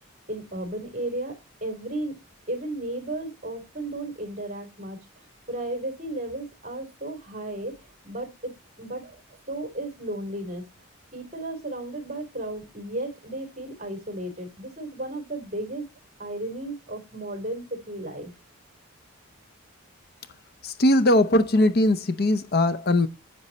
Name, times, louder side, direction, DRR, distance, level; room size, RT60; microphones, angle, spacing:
voice 1, 0.3-1.3 1.6-2.2 2.5-5.0 5.5-7.7 8.0-8.5 8.8-10.6 11.1-15.9 16.2-18.3, right 1 dB, 35° right, 3.7 m, -34 dB
voice 2, 20.6-23.1, left 1 dB, 45° left, 0.6 m, -20 dB
10.5 x 8.6 x 4.2 m
head